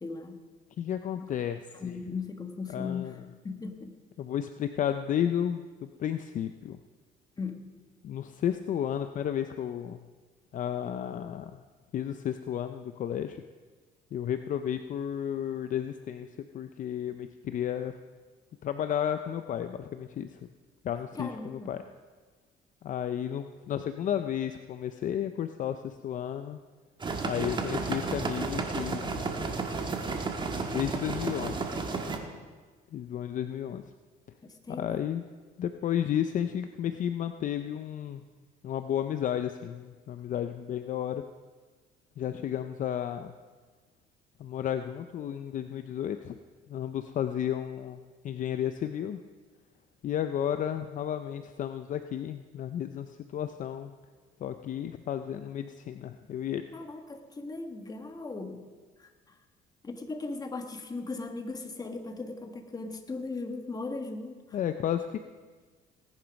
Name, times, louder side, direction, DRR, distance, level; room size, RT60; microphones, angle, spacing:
voice 1, 0.0-0.4 1.1-1.3 1.7-3.2 3.4-3.9 7.4-7.6 21.1-21.7 34.4-35.0 56.7-58.7 59.0-59.4 59.8-64.6, left 3 dB, 20° left, 5 dB, 1.6 m, -38 dB
voice 2, 0.8-1.9 2.7-3.1 4.2-6.8 8.0-10.1 10.5-11.6 11.9-13.4 14.1-17.9 18.6-20.5 20.8-21.8 22.8-26.6 27.2-29.3 30.7-31.7 32.9-33.8 34.7-35.2 35.6-38.2 38.6-41.3 42.2-43.3 44.4-46.4 46.7-49.2 50.0-53.9 54.4-56.6 64.5-65.2, left 10 dB, 50° left, 9 dB, 0.6 m, -32 dB
sound 1, 27.0-32.2, right 4 dB, 30° right, 1.5 m, -32 dB
18.0 x 10.5 x 5.3 m, 1.4 s
cardioid pair, 110°, 17 cm